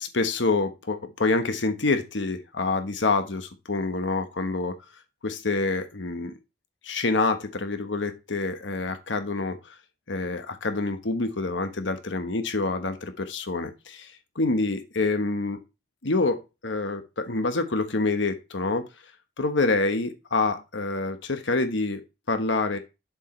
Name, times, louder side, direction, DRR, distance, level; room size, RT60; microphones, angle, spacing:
voice 1, 0.0-4.8 5.2-6.3 6.8-9.8 10.1-15.6 16.0-18.9 19.4-22.0 22.3-22.8, left 3 dB, 85° left, 8 dB, 1.2 m, -27 dB
7.2 x 4.7 x 4.3 m, 0.26 s
head